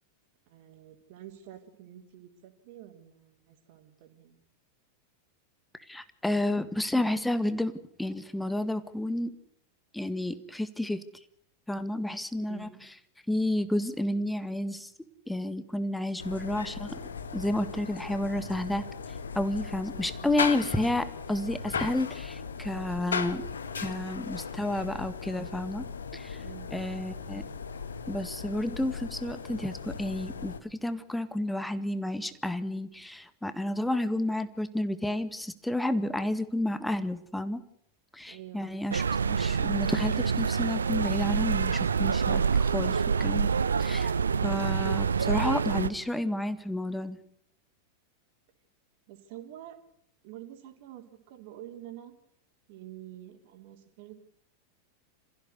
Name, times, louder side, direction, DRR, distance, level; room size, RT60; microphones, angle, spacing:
voice 1, 0.5-4.4 12.4-12.8 19.8-20.4 26.4-26.8 38.3-39.0 49.1-49.8 50.2-52.1 52.7-54.3, right 12 dB, 50° right, 4 dB, 3.9 m, -48 dB
voice 2, 5.9-7.7 8.0-9.3 9.9-11.0 11.7-12.7 13.3-14.9 15.3-17.0 17.3-18.8 19.4-23.4 23.8-25.8 26.1-26.4 26.7-27.4 28.1-37.6 38.1-43.5 43.8-44.1 44.4-47.2, left 1 dB, 5° left, 12 dB, 1.8 m, -31 dB
sound 1, 16.2-30.6, left 5 dB, 70° left, 1.6 m, -37 dB
sound 2, 38.9-45.9, right 6 dB, 70° right, 0.9 m, -27 dB
27.5 x 15.5 x 8.2 m, 0.70 s
figure-of-eight pair, 90°, 0 cm